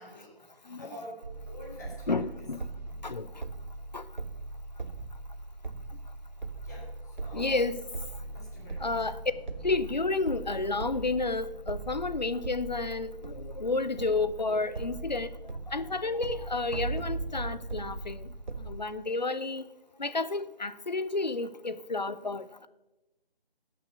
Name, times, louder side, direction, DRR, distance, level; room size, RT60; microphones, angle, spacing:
voice 1, 0.0-2.2 2.9-3.7 6.6-7.6 8.2-9.7 14.8-16.2, equal, 15° left, -5 dB, 2.0 m, -50 dB
sound 1, 1.2-18.7, right 3 dB, 50° right, 0.6 m, -39 dB
voice 2, 2.1-2.7 3.0-3.4 3.9-4.1 7.3-7.8 8.8-9.2 9.6-15.3 15.7-18.3 18.6-19.6 20.0-22.7, left 3 dB, 45° left, 15 dB, 0.5 m, -31 dB
11.5 x 6.2 x 6.7 m, 1.0 s
figure-of-eight pair, 175°, 30 cm